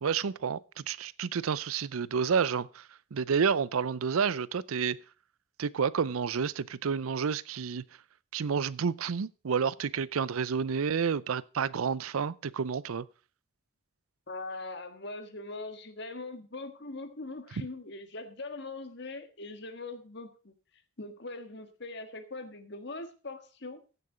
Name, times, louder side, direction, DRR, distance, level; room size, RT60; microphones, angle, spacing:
voice 1, 0.0-5.0 5.6-7.8 8.3-13.1, right 6 dB, 90° right, 0.5 m, -30 dB
voice 2, 14.3-20.5 21.0-23.8, left 2 dB, 55° left, 1.6 m, -41 dB
15.5 x 6.8 x 5.0 m
head